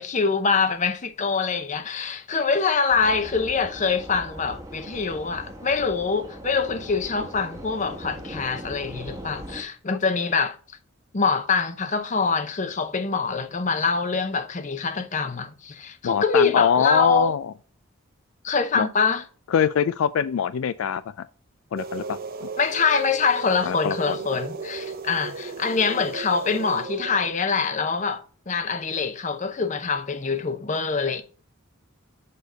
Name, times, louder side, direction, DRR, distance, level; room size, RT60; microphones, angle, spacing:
voice 1, 0.0-10.6 11.1-17.3 18.4-19.2 22.6-31.2, left 5 dB, 35° left, 0.7 m, -24 dB
sound 1, 2.9-9.6, equal, 15° right, 1.0 m, -40 dB
voice 2, 16.0-17.5 18.8-18.9 19.5-21.3 21.7-22.5 23.6-24.2, left 8 dB, 75° left, 0.3 m, -24 dB
sound 2, 21.8-27.3, right 4 dB, 45° right, 0.6 m, -35 dB
6.8 x 5.1 x 3.9 m
head